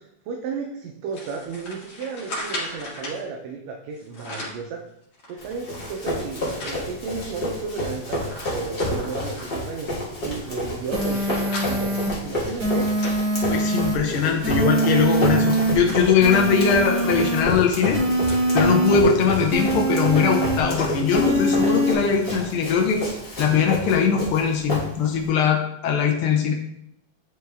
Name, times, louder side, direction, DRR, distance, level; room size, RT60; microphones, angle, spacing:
voice 1, 0.0-4.8 5.3-9.9 10.2-12.9, right 5 dB, 75° right, 1 dB, 1.8 m, -33 dB
sound 1, 1.1-3.2 3.9-4.7 5.1-6.9 7.3-7.4 7.7-9.7 10.3-14.0 14.4-14.6 14.9-18.5 18.9-19.0 19.9-20.0, left 1 dB, 50° left, 2.4 m, -38 dB
Run, 5.4-25.2, left 1 dB, 35° left, 0.9 m, -30 dB
sound 2, 10.9-12.1 12.6-13.9 14.4-15.7 16.2-17.4 17.9-19.0 19.5-20.6 21.1-21.9, right 1 dB, 35° right, 1.5 m, -23 dB
voice 2, 13.5-18.0 18.5-23.0 23.4-26.5, left 6 dB, 75° left, 0 dB, 1.2 m, -21 dB
9.2 x 3.3 x 3.4 m, 0.76 s
omnidirectional pair, 3.5 m